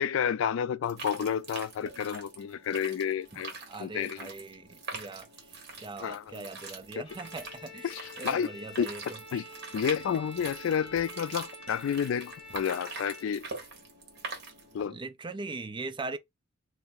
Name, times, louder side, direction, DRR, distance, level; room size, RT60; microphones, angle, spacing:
voice 1, 0.0-3.5 3.8-4.3 6.0-6.4 7.8-8.5 8.8-8.9 9.3-9.4 9.7-13.5 14.7-15.0, left 8 dB, 80° left, 0.3 m, -30 dB
sound 1, 0.8-14.9, right 3 dB, 60° right, 1.2 m, -44 dB
voice 2, 3.3-9.5 14.8-16.2, right 3 dB, 25° right, 0.4 m, -41 dB
Bowed string instrument, 7.0-13.4, left 2 dB, 25° left, 1.3 m, -47 dB
2.7 x 2.6 x 3.6 m
head